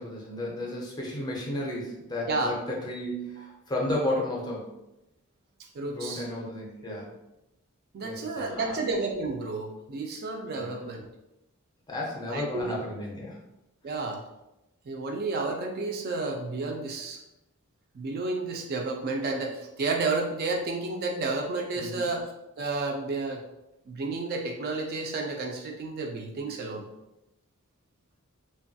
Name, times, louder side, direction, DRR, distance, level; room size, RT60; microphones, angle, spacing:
voice 1, 0.0-4.7 5.9-7.1 8.0-8.8 10.6-10.8 11.9-13.4 21.8-22.1, left 1 dB, 20° left, -2 dB, 0.5 m, -33 dB
voice 2, 5.7-6.3 7.9-11.1 12.3-12.7 13.8-14.2 14.9-17.2 17.9-22.2 22.6-23.4 23.9-26.9, right 3 dB, 45° right, 2 dB, 0.3 m, -31 dB
3.0 x 2.2 x 2.6 m, 0.92 s
head